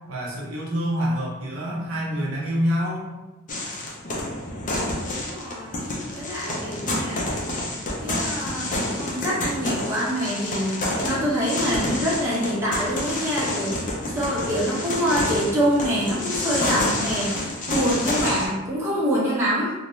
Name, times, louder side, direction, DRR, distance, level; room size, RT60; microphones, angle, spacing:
voice 1, 0.1-3.1, equal, 70° right, -4 dB, 0.7 m, -26 dB
sound 1, 3.5-18.5, left 1 dB, 35° left, 0.4 m, -28 dB
voice 2, 5.0-5.9 6.1-7.3 8.0-8.7 9.0-10.7 11.0-19.7, equal, 10° right, -7 dB, 0.6 m, -25 dB
2.5 x 2.1 x 3.0 m, 1.1 s
head